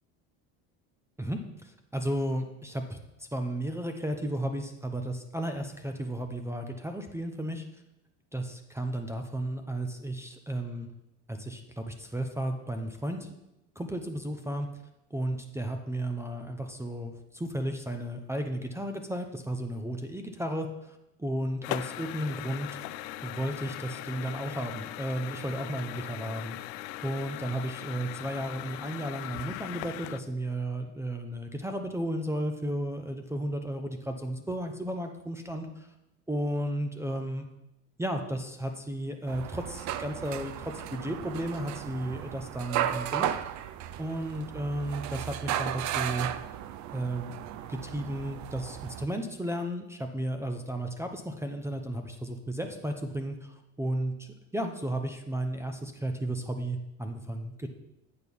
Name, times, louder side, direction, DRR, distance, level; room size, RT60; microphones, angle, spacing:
voice 1, 1.2-3.0 3.3-7.6 8.3-10.9 11.3-13.3 13.8-14.7 15.1-22.7 23.2-26.6 27.0-35.9 36.3-37.5 38.0-43.4 44.0-46.3 46.9-47.3 47.7-57.7, right 1 dB, 5° right, 5 dB, 0.6 m, -34 dB
sound 1, 21.6-30.2, left 15 dB, 80° left, 0.5 m, -39 dB
sound 2, 39.3-49.1, right 11 dB, 50° right, 0.5 m, -35 dB
8.4 x 4.5 x 5.3 m, 0.89 s
supercardioid pair, 110°, 37 cm